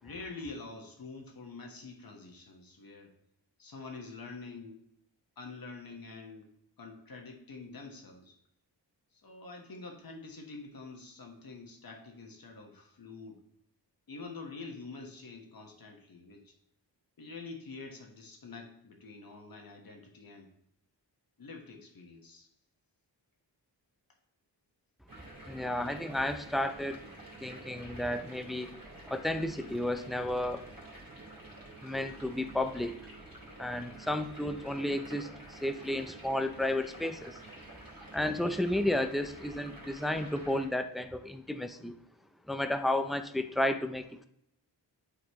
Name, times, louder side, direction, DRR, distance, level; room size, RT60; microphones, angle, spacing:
voice 1, 0.0-3.1 3.6-4.8 5.4-6.5 6.8-8.4 9.1-13.4 14.1-16.5 17.2-20.5 21.4-22.5 37.8-38.0, left 3 dB, 50° left, 2 dB, 1.4 m, -46 dB
sound 1, 25.1-40.7, right 2 dB, 50° right, 2.5 m, -49 dB
voice 2, 25.5-27.1 27.4-30.7 31.8-33.0 33.6-37.4 38.1-41.9 42.5-44.3, left 1 dB, ahead, 8 dB, 0.4 m, -32 dB
11.5 x 4.1 x 3.0 m, 0.77 s
wide cardioid pair, 105°, 44 cm